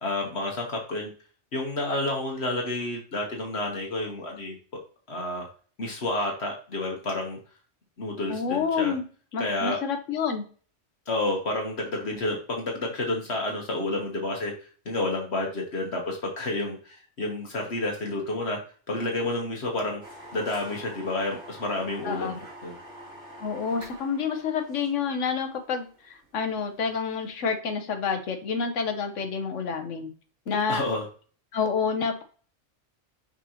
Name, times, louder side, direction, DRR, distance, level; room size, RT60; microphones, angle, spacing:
voice 1, 0.0-1.1 1.5-4.6 5.1-5.5 5.8-7.4 8.0-8.9 9.4-9.8 11.1-14.5 14.8-18.6 18.9-20.0 20.3-22.7 30.7-31.0, left 2 dB, 60° left, 0 dB, 1.5 m, -30 dB
voice 2, 8.3-9.1 9.3-10.5 22.0-22.4 23.4-30.1 30.5-30.8 31.5-32.2, left 6 dB, 80° left, 6 dB, 1.3 m, -28 dB
sound 1, 20.0-27.4, right 1 dB, 75° right, 3.1 m, -47 dB
6.2 x 5.4 x 2.9 m, 0.40 s
omnidirectional pair, 1.3 m